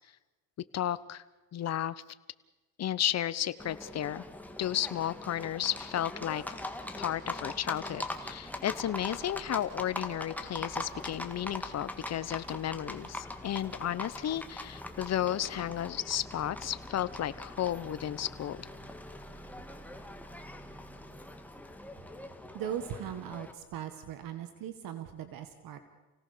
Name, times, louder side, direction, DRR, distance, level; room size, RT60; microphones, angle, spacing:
voice 1, 0.6-1.2 1.5-2.0 2.8-4.2 4.6-6.4 7.0-18.7, left 11 dB, 45° left, 16 dB, 1.0 m, -33 dB
Livestock farm animals working animals, 3.6-23.5, left 1 dB, 5° left, 2.0 m, -42 dB
voice 2, 22.5-25.8, right 9 dB, 65° right, 8 dB, 1.9 m, -39 dB
28.5 x 17.5 x 6.8 m, 1.1 s
cardioid pair, 115°, 37 cm